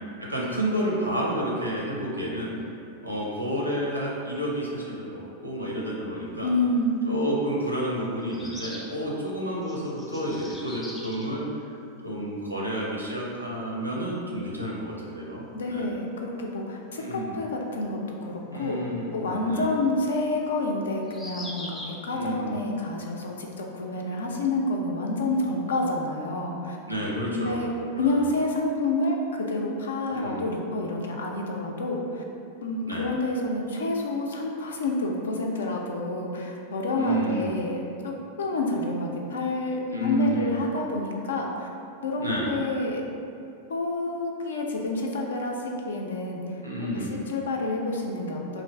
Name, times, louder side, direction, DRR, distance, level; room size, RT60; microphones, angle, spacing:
voice 1, 0.2-2.5 3.0-6.5 7.0-11.6 12.0-15.9 17.0-17.5 18.5-19.7 22.1-22.5 26.9-27.8 28.0-28.2 30.1-30.5 32.8-33.1 36.9-37.5 39.9-40.6 42.2-42.5 46.6-47.2, equal, 85° right, -4 dB, 0.7 m, -30 dB
voice 2, 6.4-7.0 15.5-18.8 19.1-26.8 27.3-27.7 28.0-29.2 29.5-32.2 32.6-41.7 42.0-43.0 43.7-46.6 46.9-48.6, left 2 dB, 65° left, 0 dB, 0.5 m, -28 dB
sound 1, 6.8-6.9 8.3-8.9 9.6-11.3 12.5-12.6 12.8-12.9 15.3-15.4 18.6-18.7 21.0-22.0, left 1 dB, 10° left, 0.6 m, -41 dB
3.1 x 2.5 x 4.1 m, 2.6 s
figure-of-eight pair, 90°, 0 cm